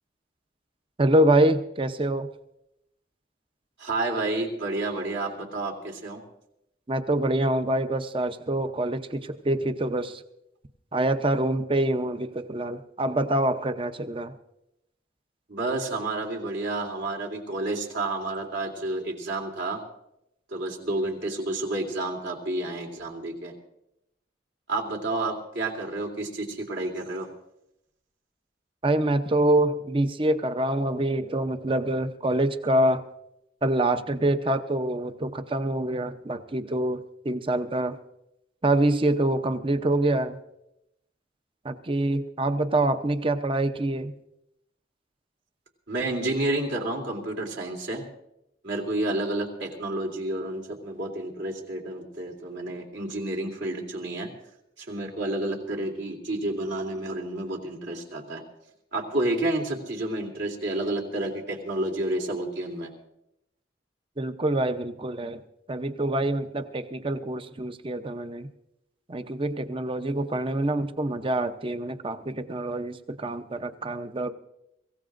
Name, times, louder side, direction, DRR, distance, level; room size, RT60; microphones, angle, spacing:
voice 1, 1.0-2.3 6.9-10.2 10.9-14.3 28.8-33.0 33.6-38.0 38.6-40.4 41.6-44.1 64.2-65.4 65.7-68.5 69.1-74.3, right 1 dB, 30° right, 10 dB, 0.7 m, -25 dB
voice 2, 3.8-6.2 15.5-19.8 20.5-23.5 24.7-27.3 45.9-48.0 48.6-54.3 54.8-58.4 58.9-62.9, right 2 dB, 70° right, -1 dB, 3.0 m, -30 dB
24.5 x 15.5 x 2.6 m, 0.83 s
head